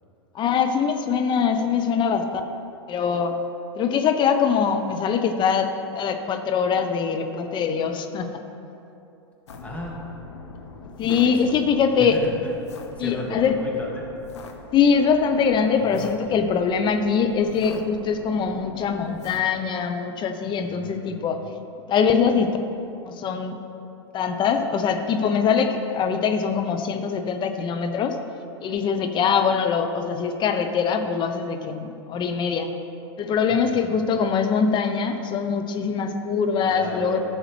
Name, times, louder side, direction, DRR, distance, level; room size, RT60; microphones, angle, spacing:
voice 1, 0.3-2.3 2.9-3.4 3.8-8.3 11.0-12.2 13.0-13.6 14.7-21.4 21.9-22.6 23.1-23.6 24.1-28.2 28.6-32.7 33.2-37.2, left 6 dB, 35° left, 7 dB, 0.7 m, -23 dB
sound 1, 9.5-19.4, left 3 dB, 85° left, 0.8 m, -43 dB
voice 2, 9.6-10.0 11.0-11.6 12.0-12.6 13.0-14.1 15.8-16.5 20.6-21.2 33.5-34.0 36.6-37.2, equal, 10° left, -3 dB, 1.8 m, -35 dB
13.0 x 6.4 x 3.3 m, 2.8 s
hypercardioid pair, 95°, 14 cm